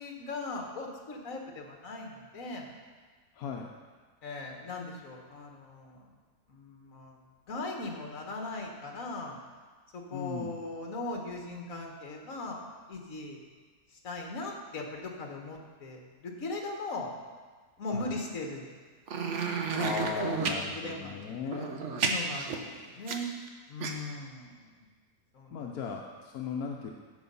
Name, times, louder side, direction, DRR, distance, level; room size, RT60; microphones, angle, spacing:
voice 1, 0.0-2.7 4.2-6.1 6.5-7.2 7.5-9.4 9.9-13.4 13.9-17.1 17.8-18.7 19.7-21.7 22.0-23.3 23.7-24.9 25.3-25.8, left 2 dB, 65° left, 1 dB, 1.8 m, -39 dB
voice 2, 3.4-3.7 10.1-10.5 17.9-18.2 19.7-21.7 25.5-26.9, left 6 dB, 85° left, 0 dB, 1.3 m, -37 dB
sound 1, 19.1-20.6 21.5-23.5 23.8-23.9, right 5 dB, 60° right, 1.1 m, -31 dB
14.5 x 5.2 x 5.5 m, 1.5 s
omnidirectional pair, 1.5 m